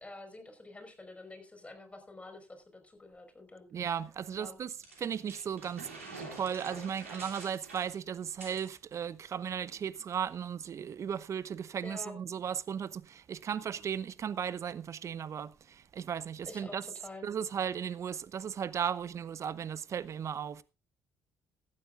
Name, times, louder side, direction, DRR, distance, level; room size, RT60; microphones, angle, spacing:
voice 1, 0.0-3.7 4.4-4.6 11.8-12.2 16.5-17.3, left 2 dB, 20° left, 4.8 m, -48 dB
voice 2, 3.7-4.7 5.0-16.8 17.2-20.6, right 8 dB, 45° right, 0.8 m, -36 dB
sound 1, 4.8-8.7, right 3 dB, 90° right, 3.0 m, -47 dB
17.5 x 12.5 x 2.5 m
figure-of-eight pair, 50°, 7 cm